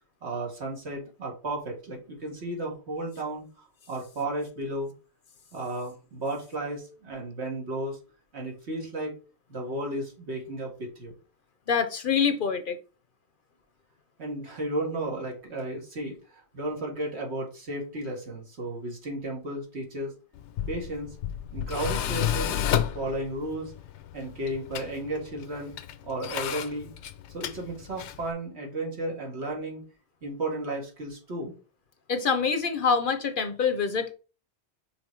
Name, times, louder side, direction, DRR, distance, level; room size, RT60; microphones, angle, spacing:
voice 1, 0.2-4.9 5.5-8.0 8.3-9.1 9.5-11.1 14.2-20.1 20.7-21.2 21.5-22.6 22.9-23.7 24.1-25.7 26.0-26.9 27.3-29.9 30.2-31.5, right 1 dB, 70° right, 2.1 m, -34 dB
voice 2, 11.7-12.8 32.1-34.1, left 6 dB, 55° left, 0.7 m, -25 dB
Tools, 20.4-28.3, left 10 dB, 80° left, 0.9 m, -32 dB
5.7 x 3.7 x 4.5 m
omnidirectional pair, 1.1 m